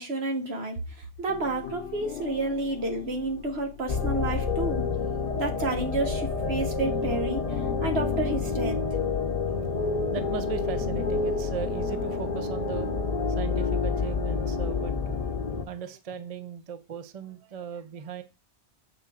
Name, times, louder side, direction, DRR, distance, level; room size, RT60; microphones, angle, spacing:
voice 1, 0.0-4.8 5.4-7.4 7.8-8.8, right 2 dB, 65° right, 1.4 m, -30 dB
sound 1, 1.3-6.5 6.8-13.1, left 10 dB, 75° left, 0.9 m, -40 dB
sound 2, 3.9-15.6, left 4 dB, 40° left, 0.7 m, -28 dB
voice 2, 9.8-12.9 13.3-15.2 15.7-18.2, right 7 dB, 45° right, 0.5 m, -38 dB
6.8 x 4.3 x 3.7 m
omnidirectional pair, 1.1 m